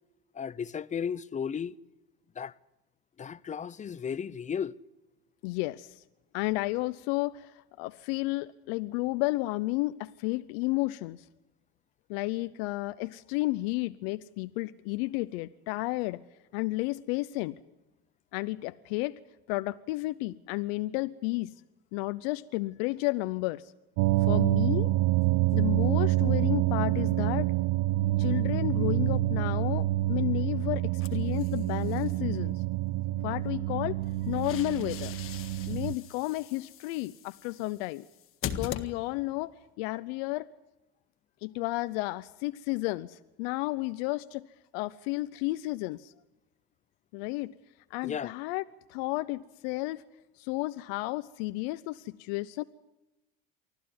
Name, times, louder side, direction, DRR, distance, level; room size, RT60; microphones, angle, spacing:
voice 1, 0.3-1.8 2.4-2.5 3.2-4.8 48.0-48.3, left 7 dB, 25° left, 0.7 m, -34 dB
voice 2, 5.4-6.0 6.3-11.2 12.1-16.2 16.5-17.6 18.3-19.2 19.5-21.5 21.9-23.7 24.2-24.9 25.5-27.5 28.2-32.6 33.2-34.0 34.3-35.2 35.7-38.0 38.4-40.5 41.4-44.5 44.7-46.1 47.1-47.5 47.9-48.6 48.9-50.0 50.4-52.6, left 20 dB, 85° left, 0.7 m, -32 dB
sound 1, 24.0-35.9, right 17 dB, 75° right, 0.7 m, -27 dB
sound 2, 31.0-32.1 34.0-39.4, left 9 dB, 45° left, 1.5 m, -42 dB
24.5 x 14.5 x 9.6 m
supercardioid pair, 105°, 29 cm